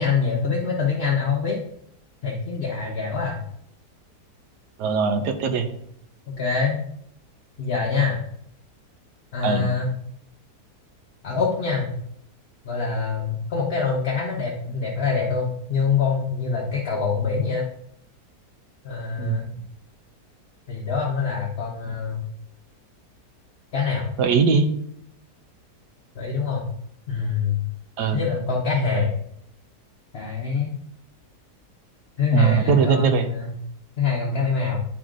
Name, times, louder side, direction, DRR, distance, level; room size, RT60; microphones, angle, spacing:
voice 1, 0.0-1.6 2.2-3.4 6.3-6.8 7.6-8.2 9.3-10.0 11.2-11.9 12.6-17.7 18.8-19.5 20.7-22.2 23.7-24.1 26.1-26.7 27.1-27.6 28.1-29.1 30.1-30.7 32.2-33.5 34.0-34.8, left 5 dB, 45° left, -3 dB, 1.0 m, -25 dB
voice 2, 4.8-5.7 9.4-9.7 19.2-19.4 24.2-24.7 28.0-28.2 32.3-33.3, right 6 dB, 85° right, 6 dB, 1.3 m, -20 dB
10.5 x 4.3 x 2.5 m, 0.70 s
omnidirectional pair, 1.7 m